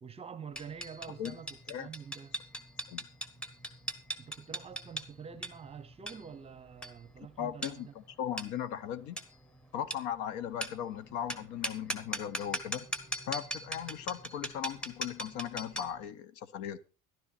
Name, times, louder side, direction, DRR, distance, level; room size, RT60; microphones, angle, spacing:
voice 1, 0.0-2.4 4.2-7.9, right 6 dB, 20° right, 0.8 m, -47 dB
sound 1, 0.6-16.0, right 1 dB, 5° left, 1.1 m, -40 dB
voice 2, 7.4-9.2 9.7-12.9 13.3-16.8, left 9 dB, 70° left, 1.3 m, -38 dB
13.5 x 12.0 x 4.2 m
cardioid pair, 170°, 32 cm